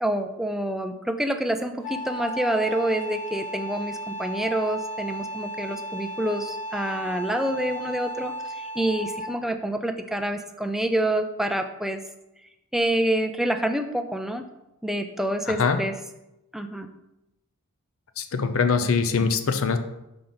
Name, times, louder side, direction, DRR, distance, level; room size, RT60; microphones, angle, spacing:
voice 1, 0.0-12.0 12.7-14.4 14.8-15.9 16.5-16.9, right 1 dB, ahead, 6 dB, 0.3 m, -27 dB
Wind instrument woodwind instrument, 1.8-9.5, equal, 30° left, 1.4 m, -34 dB
voice 2, 15.5-15.8 18.2-19.8, left 5 dB, 60° left, 9 dB, 0.5 m, -23 dB
5.8 x 5.0 x 3.9 m, 0.91 s
head